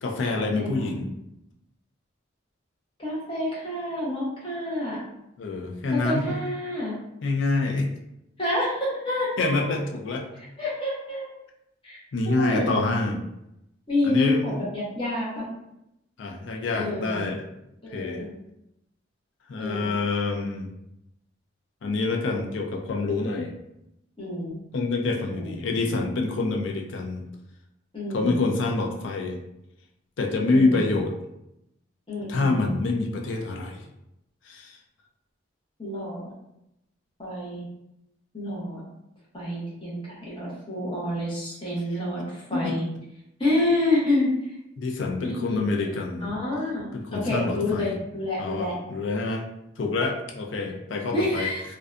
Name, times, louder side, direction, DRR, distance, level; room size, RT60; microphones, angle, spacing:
voice 1, 0.0-1.1 5.4-6.3 7.2-7.9 9.4-10.3 12.1-13.2 14.1-14.4 16.2-17.4 17.9-18.2 19.5-20.7 21.8-23.5 24.7-27.2 28.1-29.4 30.2-31.1 32.3-33.8 34.5-34.8 42.5-42.8 44.8-46.3 47.1-47.9 48.4-49.5 49.8-51.5, left 3 dB, 70° left, 1 dB, 0.4 m, -26 dB
voice 2, 0.5-1.0 3.0-5.0 5.9-6.9 8.4-9.7 10.6-11.3 11.8-12.0 12.3-12.9 13.9-15.4 16.7-17.2 17.8-18.2 19.6-19.9 24.2-24.5 25.3-25.8 27.9-28.4 30.5-30.9 32.1-32.7 35.8-36.3 37.2-37.7 38.3-38.8 39.3-42.8 43.4-44.5 45.2-45.6 46.2-48.8 51.1-51.6, left 1 dB, 25° left, -6 dB, 0.8 m, -28 dB
2.6 x 2.2 x 2.4 m, 0.84 s
head